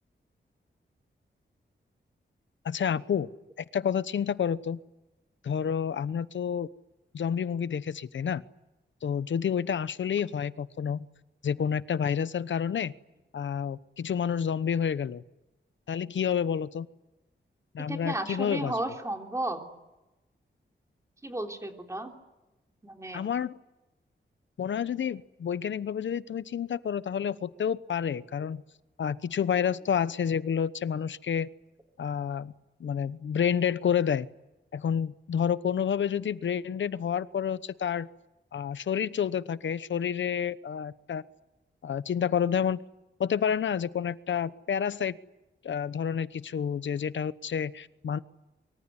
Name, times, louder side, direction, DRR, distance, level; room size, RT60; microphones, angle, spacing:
voice 1, 2.6-3.3 3.6-4.8 5.4-6.7 7.1-8.4 9.0-11.1 11.4-12.9 13.3-15.2 15.9-16.9 17.7-18.7 23.1-23.6 24.6-28.6 29.0-31.5 32.0-32.5 32.8-34.3 34.7-38.1 38.5-41.2 41.8-42.8 43.2-45.2 45.6-48.2, left 8 dB, 80° left, 16 dB, 1.0 m, -29 dB
voice 2, 17.9-19.7 21.2-22.1 22.8-23.3, right 1 dB, 15° right, 3 dB, 3.4 m, -33 dB
24.5 x 24.5 x 9.9 m, 1.0 s
wide cardioid pair, 165°, 19 cm